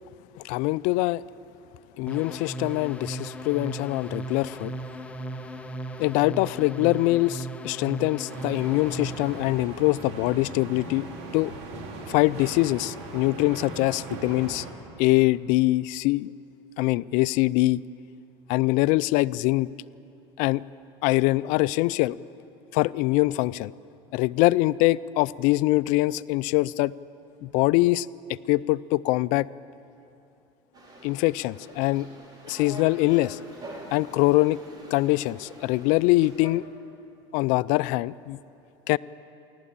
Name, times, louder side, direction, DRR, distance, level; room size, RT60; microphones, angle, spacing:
voice 1, 0.4-1.2 2.0-4.7 6.0-11.1 11.3-11.5 12.1-14.7 15.0-16.3 16.8-17.8 18.5-19.7 20.4-20.6 21.0-22.2 22.7-23.7 24.1-26.9 27.4-28.1 28.5-29.5 31.0-32.1 32.5-33.4 33.9-34.6 34.9-36.6 37.3-38.4 38.9-39.0, left 19 dB, 65° left, 18 dB, 0.4 m, -23 dB
sound 1, 2.1-9.6, right 1 dB, 10° left, 1.2 m, -37 dB
sound 2, 8.3-14.7, right 3 dB, 80° right, 3.6 m, -39 dB
sound 3, 30.7-36.5, right 1 dB, 30° right, 5.0 m, -44 dB
28.5 x 12.5 x 8.8 m, 2.8 s
supercardioid pair, 110°, 14 cm